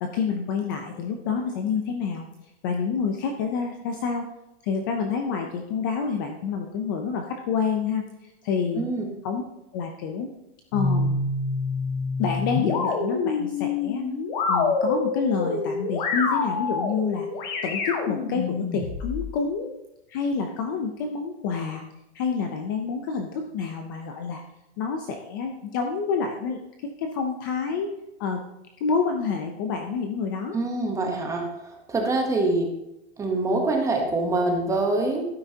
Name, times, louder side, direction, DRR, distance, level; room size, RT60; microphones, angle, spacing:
voice 1, 0.0-2.3 2.6-4.3 4.6-8.9 9.2-9.4 9.7-10.3 10.7-11.2 12.2-14.1 14.5-17.3 17.6-19.7 20.1-21.8 22.1-24.4 24.8-27.9 28.2-28.4 28.8-30.6, left 5 dB, 20° left, 4 dB, 0.4 m, -28 dB
sound 1, 10.7-19.3, left 4 dB, 45° left, 1.6 m, -27 dB
voice 2, 30.5-32.7 33.2-35.2, right 2 dB, 10° right, 2 dB, 0.8 m, -25 dB
11.5 x 9.4 x 2.7 m, 0.90 s
supercardioid pair, 160°, 33 cm